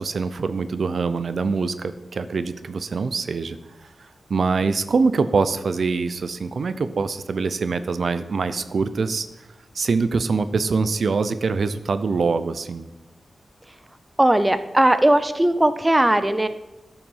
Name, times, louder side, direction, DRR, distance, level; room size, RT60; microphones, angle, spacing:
voice 1, 0.0-9.3 9.7-12.9, right 4 dB, 60° right, 12 dB, 0.5 m, -24 dB
voice 2, 14.2-16.5, right 1 dB, 10° right, 11 dB, 0.5 m, -18 dB
13.0 x 5.8 x 5.5 m, 0.98 s
wide cardioid pair, 150°, 0 cm